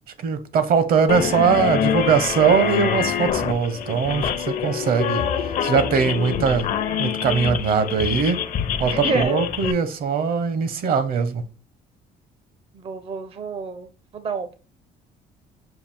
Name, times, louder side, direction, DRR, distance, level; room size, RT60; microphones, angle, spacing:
voice 1, 0.2-5.2 5.6-6.7 7.0-8.4 8.8-11.4, right 6 dB, 60° right, 0.8 m, -21 dB
sound 1, 1.1-9.7, left 8 dB, 50° left, 0.6 m, -25 dB
voice 2, 8.9-9.4 12.7-14.5, right 5 dB, 35° right, 0.5 m, -29 dB
5.7 x 2.3 x 3.4 m
cardioid pair, 110°, 17 cm